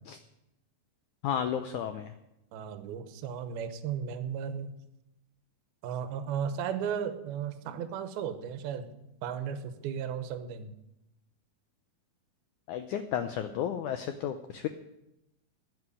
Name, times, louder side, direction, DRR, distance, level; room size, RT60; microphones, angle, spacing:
voice 1, 1.2-2.1 12.7-14.7, left 9 dB, 85° left, 8 dB, 1.7 m, -33 dB
voice 2, 2.5-4.7 5.8-8.9 9.2-10.7, right 8 dB, 80° right, 9 dB, 2.9 m, -35 dB
12.5 x 9.5 x 9.9 m, 0.89 s
omnidirectional pair, 4.4 m